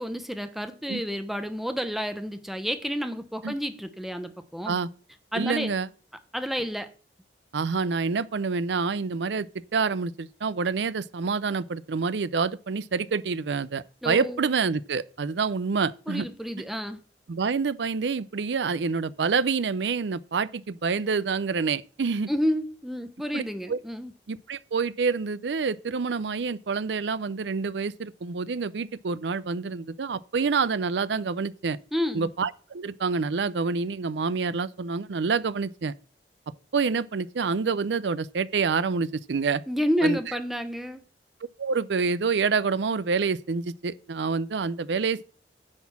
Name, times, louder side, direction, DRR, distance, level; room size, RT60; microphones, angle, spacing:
voice 1, 0.0-4.8 5.3-5.7 6.3-6.9 14.0-14.5 16.1-17.0 22.3-24.1 31.9-32.3 39.7-41.0, equal, ahead, 0.9 m, -30 dB
voice 2, 5.3-5.9 7.5-16.3 17.3-22.3 23.3-23.4 23.7-23.8 24.3-31.8 32.1-35.9 36.7-39.6 40.0-40.4 41.6-45.2, right 5 dB, 80° right, 0.5 m, -27 dB
9.9 x 4.3 x 7.1 m
head